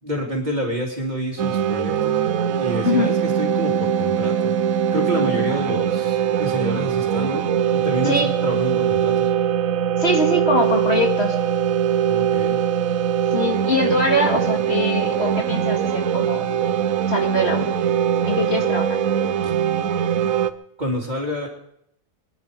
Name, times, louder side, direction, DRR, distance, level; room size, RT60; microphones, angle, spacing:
voice 1, 0.0-2.2 2.6-4.5 4.9-9.3 12.1-12.6 19.4-19.5 20.8-21.5, equal, 30° right, -1 dB, 3.4 m, -28 dB
sound 1, 1.4-20.5, right 9 dB, 90° right, 1.2 m, -21 dB
voice 2, 2.8-3.2 8.0-8.3 10.0-11.4 13.3-16.5 17.1-17.7 18.3-19.0, left 1 dB, 50° left, 2 dB, 2.1 m, -22 dB
23.0 x 11.0 x 5.3 m, 0.75 s
omnidirectional pair, 1.4 m